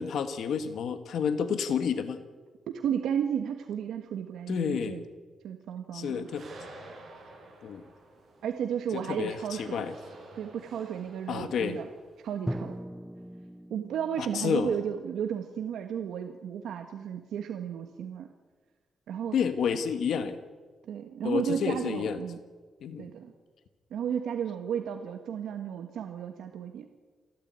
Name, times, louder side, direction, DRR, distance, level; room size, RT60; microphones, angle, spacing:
voice 1, 0.0-2.2 4.5-5.0 5.9-6.5 7.6-7.8 8.9-9.9 11.3-11.8 14.2-14.7 19.3-20.4 21.2-22.2 22.8-23.1, left 7 dB, 65° left, 10 dB, 1.5 m, -30 dB
voice 2, 2.7-5.0 5.4-6.2 8.4-9.8 10.4-11.9 12.2-12.7 13.7-18.3 19.1-19.3 20.9-22.4 23.0-23.3 23.9-26.9, right 8 dB, 90° right, 6 dB, 1.5 m, -33 dB
sound 1, 6.2-12.7, right 2 dB, 40° right, 7.2 m, -51 dB
Drum, 12.5-16.2, equal, 5° right, 0.7 m, -40 dB
28.5 x 12.0 x 9.6 m, 1.4 s
wide cardioid pair, 175°, 0 cm